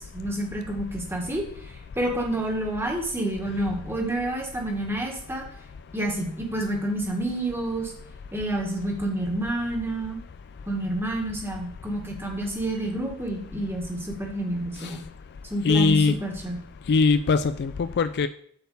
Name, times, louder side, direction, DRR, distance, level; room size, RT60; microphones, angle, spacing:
voice 1, 0.0-1.4 1.9-5.4 5.9-7.9 8.3-10.2 10.7-15.0 15.5-16.6, right 1 dB, 10° right, 0 dB, 1.7 m, -29 dB
voice 2, 15.6-16.2 16.9-18.3, left 4 dB, 50° left, 12 dB, 0.4 m, -21 dB
7.7 x 4.3 x 6.9 m, 0.62 s
head